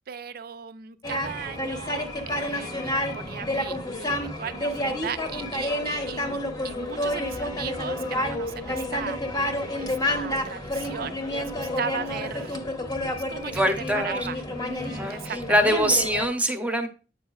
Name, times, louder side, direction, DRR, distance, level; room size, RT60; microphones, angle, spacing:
voice 1, 0.1-6.4 6.6-12.6 13.3-13.6 13.9-15.8, right 7 dB, 55° right, 0.4 m, -37 dB
sound 1, 1.0-16.3, left 1 dB, 20° left, 0.8 m, -29 dB
voice 2, 13.5-14.2 15.0-15.2 15.5-16.9, equal, 10° right, 0.7 m, -23 dB
8.2 x 5.5 x 2.3 m
head